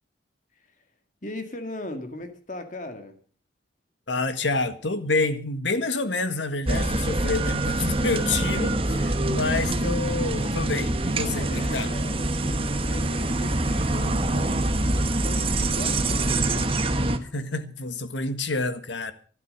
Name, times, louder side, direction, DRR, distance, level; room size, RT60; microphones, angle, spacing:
voice 1, 0.5-0.8 1.2-3.2 11.2-16.9, left 1 dB, 45° left, 2.1 m, -39 dB
voice 2, 4.1-11.9 17.3-19.1, left 3 dB, 85° left, 1.7 m, -28 dB
sound 1, 6.7-17.2, right 2 dB, 30° right, 1.3 m, -25 dB
13.5 x 12.5 x 6.6 m
head